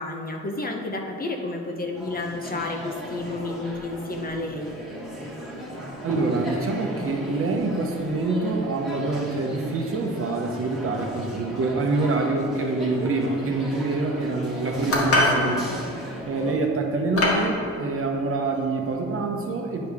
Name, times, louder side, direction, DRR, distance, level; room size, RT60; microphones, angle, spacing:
voice 1, 0.0-4.7, left 2 dB, 30° left, 2 dB, 0.8 m, -31 dB
sound 1, 1.9-16.5, equal, ahead, 1.5 m, -36 dB
voice 2, 6.0-15.7 16.2-19.9, right 3 dB, 45° right, 2 dB, 1.0 m, -26 dB
sound 2, 14.9-15.4 16.4-16.5 17.2-17.5, left 1 dB, 50° left, 1.7 m, -21 dB
9.6 x 4.8 x 3.5 m, 2.3 s
cardioid pair, 90°, 30 cm